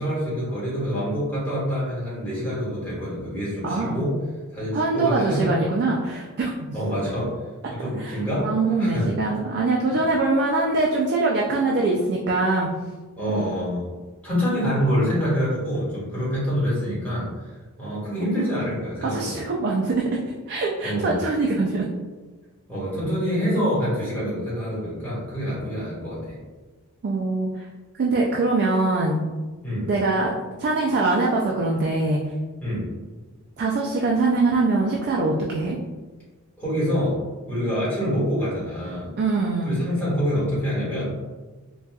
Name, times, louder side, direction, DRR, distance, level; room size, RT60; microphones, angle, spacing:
voice 1, 0.0-4.2 4.5-5.5 6.7-7.3 7.7-8.5 8.8-9.1 9.9-10.1 13.1-13.9 14.2-19.4 20.8-21.2 22.7-26.4 29.6-29.9 32.6-32.8 36.6-37.2 37.5-39.1 39.6-41.1, equal, 10° left, -9 dB, 1.5 m, -26 dB
voice 2, 3.6-4.1 4.7-6.7 8.0-12.7 13.4-13.5 18.4-18.5 19.0-20.2 20.5-21.9 27.0-27.5 28.0-29.2 29.9-30.3 30.6-32.2 33.6-35.8 39.2-39.8, right 3 dB, 50° right, -2 dB, 0.3 m, -23 dB
4.0 x 2.3 x 2.3 m, 1.3 s
head